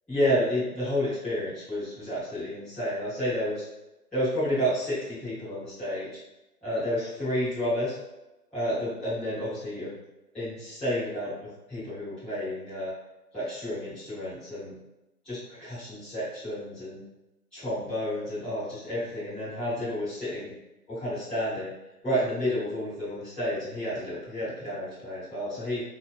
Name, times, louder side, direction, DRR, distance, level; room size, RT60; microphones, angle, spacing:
voice 1, 0.1-3.7 4.1-6.1 6.6-7.9 8.5-9.9 10.3-12.9 13.3-14.7 15.2-17.0 17.5-20.5 20.9-21.7 22.0-25.8, equal, ahead, -15 dB, 0.7 m, -30 dB
4.2 x 2.8 x 2.5 m, 0.97 s
figure-of-eight pair, 135°, 47 cm